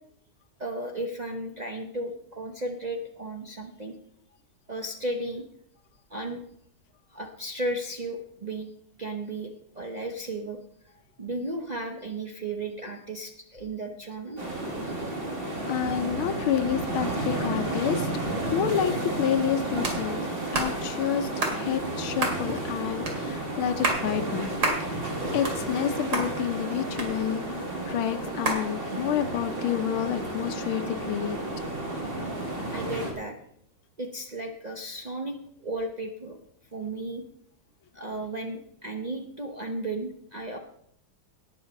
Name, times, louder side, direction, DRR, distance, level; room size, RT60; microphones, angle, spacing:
voice 1, 0.6-4.0 4.7-5.4 6.1-6.4 7.1-8.7 9.0-10.6 11.2-14.4 32.7-33.4 34.0-35.4 35.6-36.4 36.7-37.2 37.9-40.6, right 1 dB, 80° right, 1 dB, 0.3 m, -34 dB
sound 1, 14.4-33.1, right 2 dB, 25° right, 2.3 m, -32 dB
voice 2, 15.7-18.1 18.5-20.2 20.5-24.5 24.8-31.4, left 9 dB, 80° left, 9 dB, 1.6 m, -29 dB
sound 2, 19.8-20.0 20.5-20.7 21.4-21.6 22.2-22.4 23.1-23.2 23.7-24.0 24.6-24.8 25.2-25.9 26.1-26.3 27.0-27.5 28.4-28.6, right 2 dB, 60° right, 3.0 m, -27 dB
18.0 x 6.1 x 5.3 m, 0.71 s
omnidirectional pair, 2.3 m